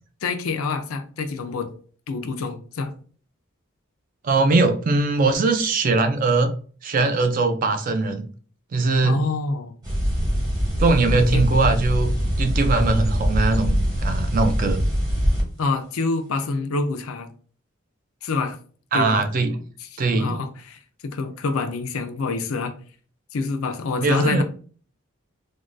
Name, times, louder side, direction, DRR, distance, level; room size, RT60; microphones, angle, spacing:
voice 1, 0.2-1.7 2.1-2.9 9.0-9.7 11.3-11.5 15.6-17.3 18.2-18.6 18.9-19.2 19.8-22.7 23.3-24.4, left 3 dB, 90° left, 0.5 m, -27 dB
voice 2, 4.2-8.3 8.7-9.2 10.8-14.8 18.9-19.6 20.0-20.4 24.0-24.4, right 3 dB, 40° right, 0.3 m, -21 dB
sound 1, 9.8-15.4, equal, 20° right, 0.8 m, -23 dB
3.5 x 2.2 x 2.5 m
head